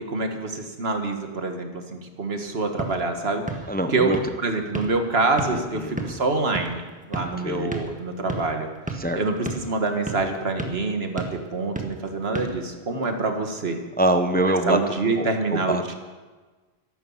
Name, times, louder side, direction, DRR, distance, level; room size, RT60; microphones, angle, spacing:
voice 1, 0.0-3.4 3.9-8.7 9.1-11.2 11.5-13.8 14.3-15.9, right 3 dB, 70° right, 5 dB, 1.8 m, -26 dB
sound 1, 2.4-13.3, right 2 dB, 5° right, 1.5 m, -36 dB
voice 2, 3.7-4.2 5.5-6.1 7.4-7.7 9.0-9.2 14.0-14.8 15.2-15.8, right 1 dB, 10° left, 8 dB, 0.7 m, -24 dB
13.5 x 11.5 x 7.2 m, 1.3 s
omnidirectional pair, 1.1 m